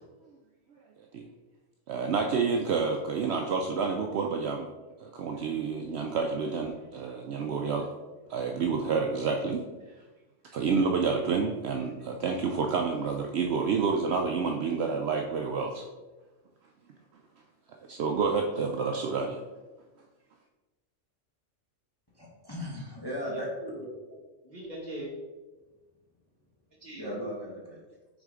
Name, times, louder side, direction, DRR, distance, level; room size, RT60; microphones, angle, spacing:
voice 1, 1.9-4.7 5.0-7.9 8.3-9.6 10.5-15.8 17.9-19.4, right 5 dB, 65° right, 2 dB, 0.8 m, -29 dB
voice 2, 22.1-23.5 27.0-27.8, equal, 20° left, -4 dB, 0.9 m, -37 dB
voice 3, 23.2-23.9 24.4-25.1 26.8-27.4, right 1 dB, 35° right, -4 dB, 1.7 m, -40 dB
6.3 x 4.0 x 3.6 m, 1.2 s
omnidirectional pair, 1.3 m